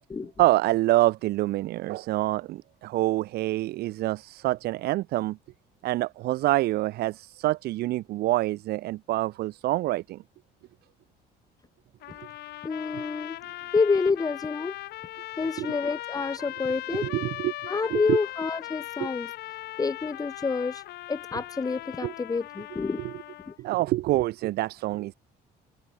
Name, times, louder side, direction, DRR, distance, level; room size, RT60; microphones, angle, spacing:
voice 1, 0.4-5.4 5.8-10.2 15.4-15.8 16.9-18.2 19.0-19.1 21.3-21.4 22.0-22.1 23.0-23.2 23.6-25.1, right 17 dB, 70° right, 0.5 m, -26 dB
sound 1, 12.0-23.6, left 16 dB, 75° left, 1.7 m, -39 dB
voice 2, 12.6-13.4 13.7-14.8 15.4-17.1 17.7-19.3 19.8-20.8 21.1-23.0 23.5-23.6, left 4 dB, 20° left, 1.3 m, -28 dB
cardioid pair, 110°, 17 cm